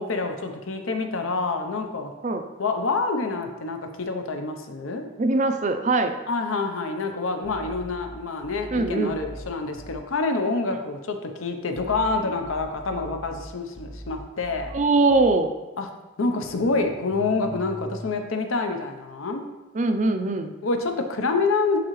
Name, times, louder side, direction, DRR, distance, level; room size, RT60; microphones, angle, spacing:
voice 1, 0.0-2.1 2.6-5.1 6.3-14.7 15.8-15.9 16.2-19.4 20.6-21.8, left 3 dB, 75° left, 5 dB, 0.7 m, -27 dB
voice 2, 5.2-6.1 8.7-9.2 14.7-15.5 19.7-20.5, right 3 dB, 35° right, 7 dB, 0.4 m, -21 dB
sound 1, 7.4-10.0 11.8-15.4 16.4-18.1, equal, 40° left, 0.8 m, -41 dB
11.0 x 3.8 x 3.1 m, 1.2 s
head